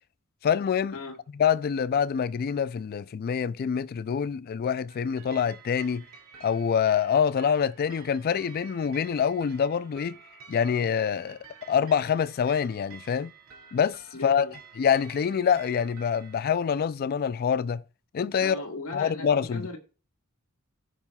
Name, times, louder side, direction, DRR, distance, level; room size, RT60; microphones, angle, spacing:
voice 1, 0.4-1.0 1.3-6.1 6.4-10.2 10.5-11.4 11.7-13.3 13.7-17.8 18.1-18.6 18.9-19.7, left 7 dB, 45° left, 0.3 m, -26 dB
sound 1, 4.9-16.5, right 6 dB, 80° right, 2.2 m, -51 dB
voice 2, 14.1-14.5 18.4-19.8, left 2 dB, 75° left, 1.7 m, -38 dB
16.5 x 5.6 x 2.3 m
head